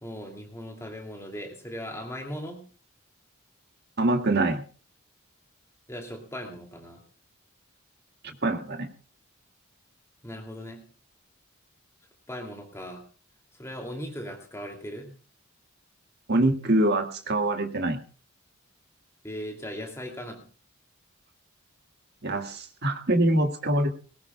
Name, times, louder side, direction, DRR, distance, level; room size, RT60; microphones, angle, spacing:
voice 1, 0.0-2.6 5.9-7.0 10.2-10.9 12.3-13.0 13.6-15.1 19.2-20.5, equal, 15° left, 2 dB, 2.6 m, -38 dB
voice 2, 4.0-4.6 8.4-8.9 16.3-18.0 22.2-23.9, right 1 dB, 50° right, 5 dB, 2.0 m, -24 dB
20.5 x 18.0 x 2.3 m, 0.36 s
head